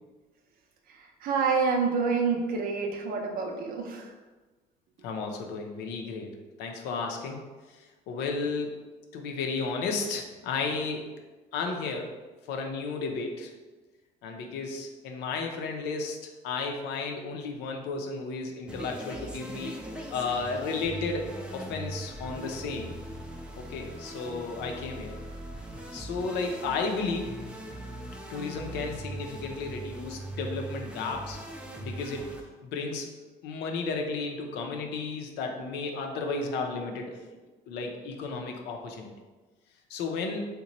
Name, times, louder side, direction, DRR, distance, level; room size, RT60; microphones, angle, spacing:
voice 1, 1.2-4.1, right 5 dB, 60° right, 2 dB, 0.5 m, -27 dB
voice 2, 5.0-8.8 9.1-11.1 11.5-12.2 12.5-13.5 14.2-22.9 23.6-25.2 25.9-27.3 28.3-31.4 31.8-32.3 32.6-33.1 33.4-37.2 37.7-39.1 39.9-40.5, left 4 dB, 85° left, 2 dB, 0.5 m, -33 dB
sound 1, 18.7-32.4, right 1 dB, 5° right, 0.4 m, -40 dB
2.9 x 2.2 x 3.9 m, 1.3 s
cardioid pair, 110°, 17 cm